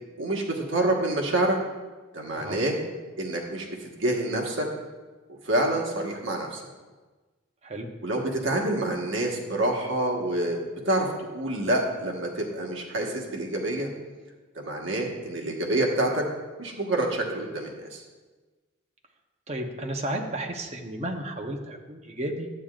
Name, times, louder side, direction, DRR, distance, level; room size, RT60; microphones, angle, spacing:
voice 1, 0.2-1.6 2.1-2.8 3.2-4.7 5.4-6.6 8.0-10.6 10.8-13.9 14.5-16.2 16.6-18.0, right 1 dB, 60° right, 0 dB, 1.3 m, -27 dB
voice 2, 19.5-22.5, right 1 dB, 30° right, 2 dB, 0.9 m, -33 dB
12.0 x 8.7 x 2.4 m, 1.3 s
head